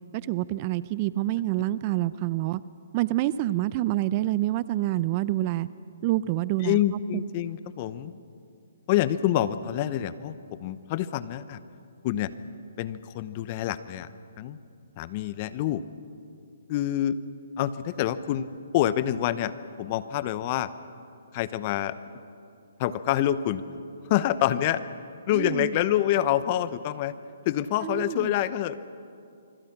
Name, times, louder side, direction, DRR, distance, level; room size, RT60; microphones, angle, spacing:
voice 1, 0.1-2.6 2.9-5.7 6.0-6.8 25.3-25.8 27.8-28.3, right 15 dB, 35° right, 16 dB, 0.6 m, -27 dB
voice 2, 6.6-8.1 8.9-11.6 12.0-12.3 12.8-14.1 14.4-14.6 15.0-15.8 16.7-17.2 17.6-18.5 18.7-19.5 19.8-20.7 21.3-22.0 22.8-23.6 24.1-24.8 25.3-27.1 27.4-28.8, left 12 dB, 35° left, 14 dB, 0.9 m, -26 dB
25.5 x 25.0 x 6.1 m, 2.5 s
hypercardioid pair, 145°, 0 cm